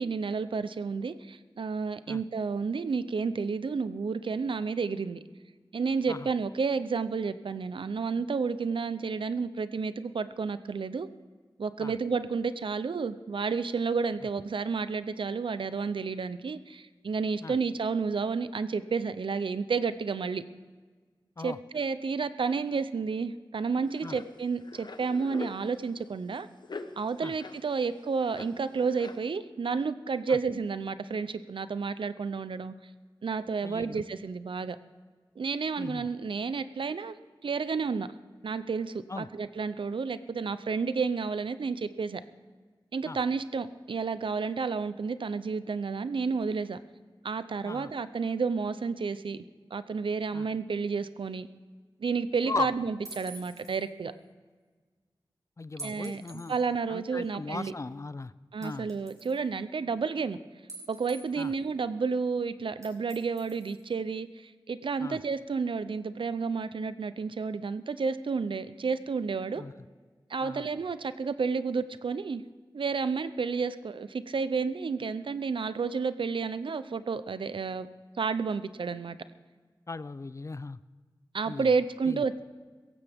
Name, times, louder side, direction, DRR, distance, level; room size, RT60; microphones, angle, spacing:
voice 1, 0.0-5.2 5.7-11.1 11.6-20.4 21.4-26.5 27.0-32.7 33.2-34.8 35.4-37.1 37.4-38.1 38.4-42.2 42.9-46.8 47.2-49.4 49.7-51.5 52.0-54.1 55.8-57.7 58.5-60.4 60.9-69.6 70.3-72.4 72.7-77.9 78.2-79.2 81.3-82.4, right 5 dB, 80° right, 13 dB, 0.6 m, -31 dB
sound 1, 23.9-25.6 26.0-26.1 26.4-26.5 26.6-27.6 28.0-29.2, left 3 dB, 60° left, 1.0 m, -43 dB
voice 2, 33.6-34.0 35.8-36.1 39.1-39.3 43.1-43.2 47.7-47.9 50.3-50.5 52.5-52.7 55.6-56.5 56.9-58.3 58.6-58.9 61.4-61.5 65.0-65.2 69.6-69.7 70.4-70.7 79.9-80.8 81.5-81.7 82.1-82.2, left 3 dB, 35° left, 17 dB, 0.4 m, -37 dB
sound 2, 53.1-53.8 55.8-56.6 57.2-57.3 58.6-59.4 60.7-61.6 62.8-63.9, right 2 dB, 40° right, 5.5 m, -46 dB
17.0 x 15.0 x 3.6 m, 1.5 s
wide cardioid pair, 60°, 9 cm